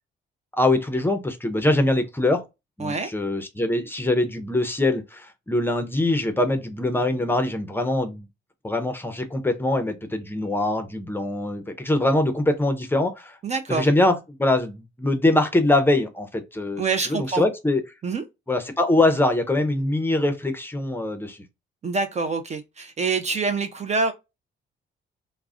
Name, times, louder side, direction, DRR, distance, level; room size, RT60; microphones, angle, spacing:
voice 1, 0.5-2.4 2.8-8.3 8.6-13.4 13.7-17.8 18.5-21.4, left 2 dB, 10° left, 0.6 m, -23 dB
voice 2, 2.8-3.1 13.4-13.9 16.8-17.5 18.0-18.2 21.8-24.1, right 4 dB, 35° right, 0.4 m, -26 dB
2.3 x 2.1 x 3.5 m
cardioid pair, 90°, 20 cm